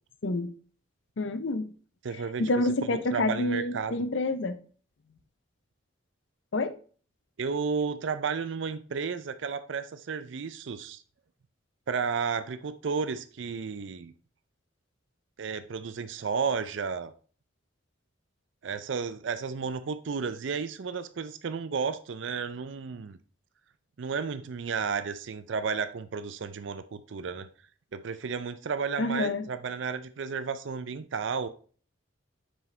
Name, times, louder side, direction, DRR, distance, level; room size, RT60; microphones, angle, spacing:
voice 1, 1.2-1.7 2.4-4.6 6.5-6.7 29.0-29.4, left 2 dB, 70° left, 0.6 m, -28 dB
voice 2, 2.0-4.0 7.4-11.0 11.9-14.1 15.4-17.1 18.6-23.2 24.0-27.5 27.9-31.5, right 5 dB, 70° right, 0.5 m, -33 dB
6.4 x 4.8 x 4.3 m
head